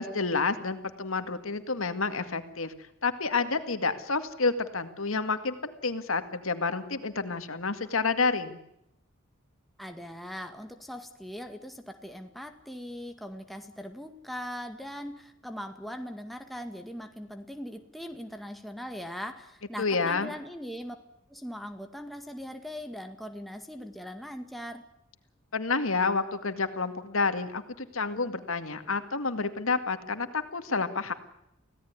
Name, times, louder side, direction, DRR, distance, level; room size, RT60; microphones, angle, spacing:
voice 1, 0.0-2.7 3.0-8.6 19.8-20.3 25.5-31.1, left 4 dB, 90° left, 9 dB, 2.2 m, -29 dB
voice 2, 9.8-21.0 21.3-24.9, equal, ahead, 5 dB, 2.0 m, -40 dB
25.5 x 17.0 x 9.7 m, 0.80 s
head